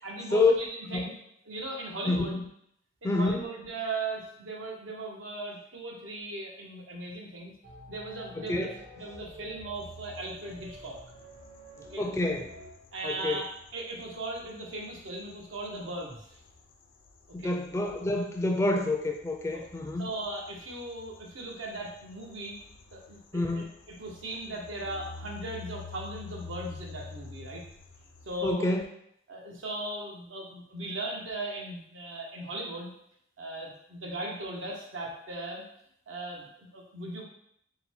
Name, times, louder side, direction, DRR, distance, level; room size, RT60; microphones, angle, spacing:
voice 1, 0.0-1.1 1.5-2.4 3.0-7.5 7.9-8.7 9.0-11.0 11.7-12.0 12.9-16.4 17.4-17.5 19.5-19.6 20.0-22.6 22.9-27.6 28.2-28.7 29.3-32.9 33.4-35.6 36.1-37.2, right 2 dB, 90° right, -1 dB, 1.0 m, -38 dB
voice 2, 2.1-2.4 3.0-3.4 8.4-8.7 12.0-12.5 13.0-13.4 17.3-20.1 23.3-23.6 28.4-28.8, left 2 dB, 15° left, 2 dB, 0.3 m, -27 dB
sound 1, 7.6-12.7, equal, 70° right, 0.7 m, -49 dB
sound 2, 9.8-28.4, left 4 dB, 80° left, 0.5 m, -50 dB
3.9 x 2.2 x 4.3 m, 0.71 s
head